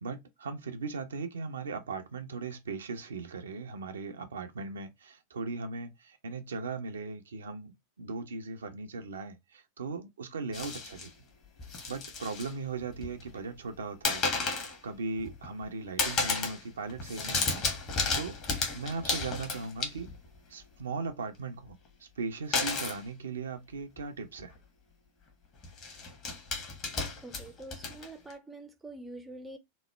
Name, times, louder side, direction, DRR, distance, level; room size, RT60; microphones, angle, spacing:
voice 1, 0.0-11.1 11.9-17.6 18.1-18.4 18.7-20.1 20.5-24.5, right 4 dB, 70° right, 0.5 m, -38 dB
sound 1, 10.5-11.1 11.6-12.5 12.8-13.4 14.0-14.8 15.2-15.7 16.0-16.6 16.9-20.3 22.5-23.0 24.0-24.1 24.4-24.6 25.6-28.3, left 4 dB, 35° left, 0.9 m, -33 dB
voice 2, 27.2-29.6, right 2 dB, 10° right, 0.5 m, -45 dB
3.0 x 2.1 x 3.1 m
figure-of-eight pair, 90°, 0 cm